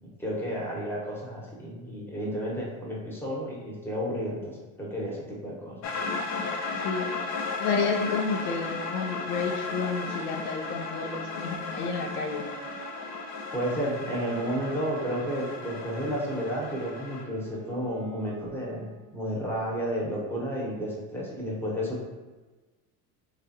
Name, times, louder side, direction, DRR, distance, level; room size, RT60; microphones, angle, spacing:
voice 1, 0.2-5.8 13.5-22.0, equal, 5° left, -4 dB, 0.9 m, -32 dB
sound 1, 5.8-17.2, left 4 dB, 45° left, 0.5 m, -35 dB
voice 2, 6.7-7.1 7.6-12.4, left 4 dB, 85° left, 1 dB, 0.6 m, -30 dB
Wind instrument woodwind instrument, 11.0-19.3, right 5 dB, 35° right, 0.4 m, -47 dB
3.3 x 2.4 x 2.7 m, 1.2 s
hypercardioid pair, 85°, 42 cm